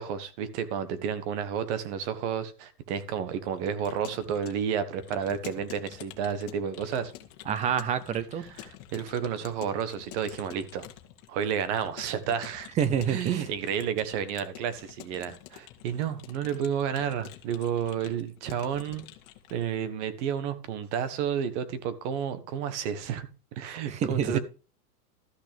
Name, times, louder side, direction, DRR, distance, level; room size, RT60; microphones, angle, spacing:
voice 1, 0.0-7.1 8.4-10.9 11.3-12.7 13.1-19.1 19.5-23.3 23.5-24.4, right 8 dB, 50° right, 1.6 m, -31 dB
Keyboard (musical) / Computer keyboard, 3.6-19.7, left 13 dB, 40° left, 1.6 m, -48 dB
voice 2, 7.5-8.4 12.8-13.5 23.9-24.4, right 8 dB, 15° right, 0.5 m, -27 dB
13.5 x 6.1 x 5.2 m
supercardioid pair, 150°, 46 cm